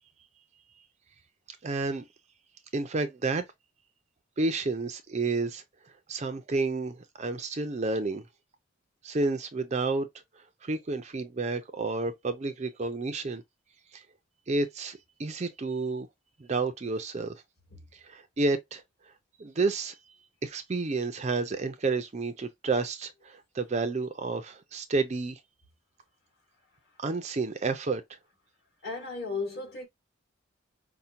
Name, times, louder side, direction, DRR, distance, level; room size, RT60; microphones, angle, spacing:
voice 1, 1.5-2.0 2.7-3.4 4.4-5.6 6.1-8.2 9.0-10.1 10.6-13.4 13.9-14.0 14.5-16.1 16.4-17.4 17.9-18.8 19.4-20.0 20.4-25.4 27.0-28.0, right 3 dB, 35° right, 0.4 m, -30 dB
voice 2, 28.8-29.9, left 4 dB, 50° left, 2.4 m, -35 dB
5.6 x 2.1 x 2.5 m
head